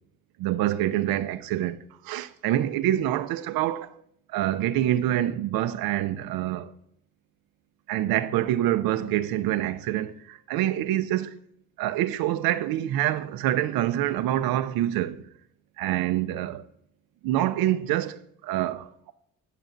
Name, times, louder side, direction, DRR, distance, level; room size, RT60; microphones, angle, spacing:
voice 1, 0.4-3.9 4.3-6.7 7.9-11.4 11.8-15.2 15.8-16.6 17.2-19.1, right 13 dB, 85° right, 0.6 m, -26 dB
17.0 x 6.8 x 2.6 m
cardioid pair, 75°, 35 cm